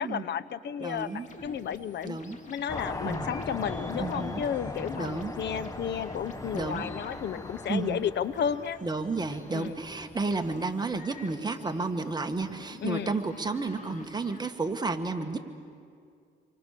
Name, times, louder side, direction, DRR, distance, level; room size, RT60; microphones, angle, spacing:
voice 1, 0.0-2.2 2.5-8.8 9.5-9.7 12.8-13.2, left 8 dB, 60° left, 16 dB, 0.7 m, -33 dB
voice 2, 0.8-1.3 2.0-2.4 3.0-3.3 4.0-4.4 5.0-5.3 6.5-6.8 7.7-8.0 8.8-15.4, right 3 dB, 20° right, 5 dB, 1.7 m, -32 dB
sound 1, 1.0-14.4, left 4 dB, 40° left, 2.6 m, -50 dB
sound 2, 2.7-10.6, left 2 dB, 15° left, 1.0 m, -39 dB
28.0 x 24.0 x 6.8 m, 2.3 s
cardioid pair, 90°, 20 cm